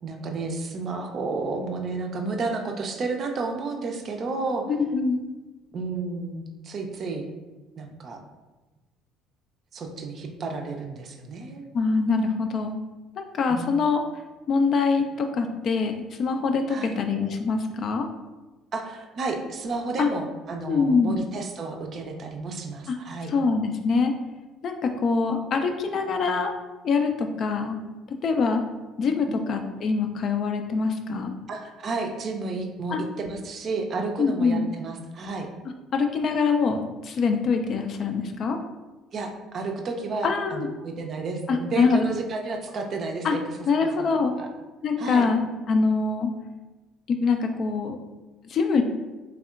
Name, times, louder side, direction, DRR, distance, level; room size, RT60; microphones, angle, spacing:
voice 1, 0.0-4.7 5.7-7.3 7.8-8.2 9.7-11.7 13.5-13.7 16.7-17.0 18.7-23.3 29.3-29.5 31.5-35.5 39.1-43.4 43.8-44.1 44.4-44.5 45.0-45.3, right 3 dB, 45° right, 3 dB, 0.4 m, -31 dB
voice 2, 4.7-5.2 11.7-12.8 13.2-14.0 14.5-18.1 20.0-20.1 20.7-21.1 22.9-23.0 23.3-24.1 24.6-26.5 26.8-27.8 28.2-28.6 29.0-31.3 32.9-33.0 34.2-34.6 35.9-38.6 40.2-40.7 41.5-42.0 43.2-43.3 43.7-44.3 44.8-46.3 47.1-48.0 48.5-48.8, left 4 dB, 45° left, 5 dB, 0.3 m, -24 dB
3.4 x 3.4 x 2.3 m, 1.2 s
figure-of-eight pair, 55°, 0 cm